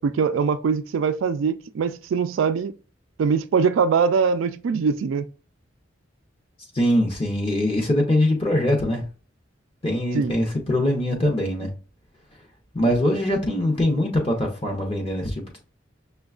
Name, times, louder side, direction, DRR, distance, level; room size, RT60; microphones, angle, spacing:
voice 1, 0.0-2.7 3.2-5.3 10.1-10.3, right 5 dB, 90° right, 0.3 m, -22 dB
voice 2, 6.7-9.0 9.8-11.7 12.7-15.6, left 1 dB, 30° left, 0.6 m, -22 dB
6.1 x 2.2 x 2.3 m
head